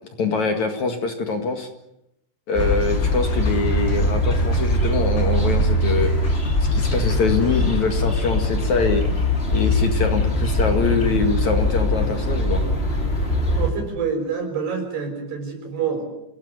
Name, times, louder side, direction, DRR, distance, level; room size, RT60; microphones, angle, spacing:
voice 1, 0.2-1.7 2.5-6.1 6.7-9.0 9.5-12.6, left 4 dB, 50° left, 5 dB, 2.9 m, -24 dB
sound 1, 2.5-13.7, left 1 dB, 15° left, 3.0 m, -21 dB
sound 2, 2.6-7.8, left 4 dB, 75° left, 8.0 m, -35 dB
voice 2, 13.6-16.0, right 6 dB, 70° right, 4 dB, 7.8 m, -27 dB
26.5 x 17.0 x 9.8 m, 0.84 s
omnidirectional pair, 4.7 m